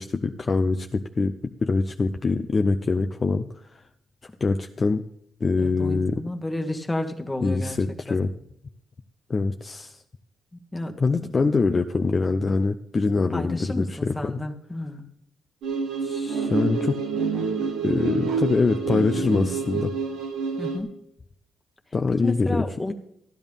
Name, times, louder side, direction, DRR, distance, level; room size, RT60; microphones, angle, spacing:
voice 1, 0.0-3.6 4.4-5.0 5.4-6.2 7.4-8.3 9.3-10.0 11.0-14.1 16.0-17.0 17.8-19.9 21.9-22.6, left 3 dB, 35° left, 6 dB, 0.6 m, -24 dB
voice 2, 5.6-7.8 8.1-8.2 10.7-11.0 11.2-11.3 13.3-15.0 20.6-20.9 22.2-22.9, left 1 dB, 10° left, 4 dB, 1.4 m, -31 dB
sound 1, 15.6-20.8, right 5 dB, 85° right, 1.8 m, -27 dB
14.5 x 10.0 x 3.6 m, 0.72 s
cardioid pair, 90°, 0 cm